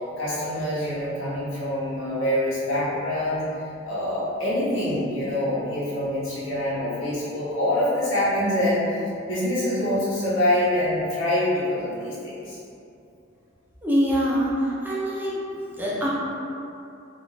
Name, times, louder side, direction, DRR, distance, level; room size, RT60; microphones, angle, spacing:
voice 1, 0.2-3.4 3.8-8.8 9.2-12.6, left 1 dB, 85° left, -10 dB, 1.3 m, -25 dB
voice 2, 13.8-15.4 15.8-16.1, equal, 10° right, -6 dB, 0.6 m, -24 dB
3.9 x 2.5 x 3.5 m, 2.6 s
head